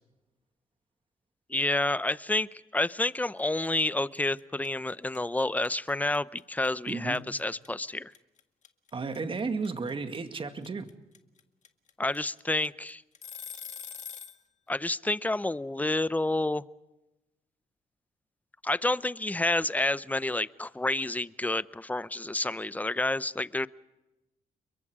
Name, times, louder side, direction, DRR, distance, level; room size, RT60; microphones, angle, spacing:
voice 1, 1.5-8.1 12.0-13.0 14.7-16.6 18.6-23.7, left 2 dB, 10° left, 17 dB, 0.7 m, -29 dB
sound 1, 3.1-3.4 3.6-14.4, left 7 dB, 55° left, 1.8 m, -44 dB
voice 2, 6.9-7.3 8.9-10.9, right 4 dB, 35° right, 8 dB, 2.1 m, -33 dB
29.5 x 23.0 x 5.0 m, 1.0 s
cardioid pair, 95°, 15 cm